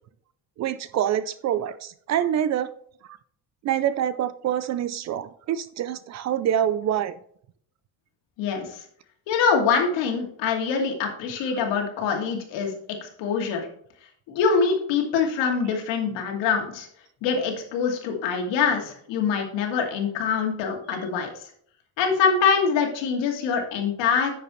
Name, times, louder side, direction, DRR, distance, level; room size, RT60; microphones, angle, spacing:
voice 1, 0.6-2.7 3.6-7.1, right 10 dB, 40° right, 15 dB, 0.4 m, -26 dB
voice 2, 8.4-8.8 9.3-12.7 13.0-13.7 14.3-16.9 17.2-21.3 22.0-24.3, left 6 dB, 75° left, 2 dB, 2.6 m, -24 dB
10.5 x 6.8 x 3.1 m, 0.62 s
cardioid pair, 170°, 44 cm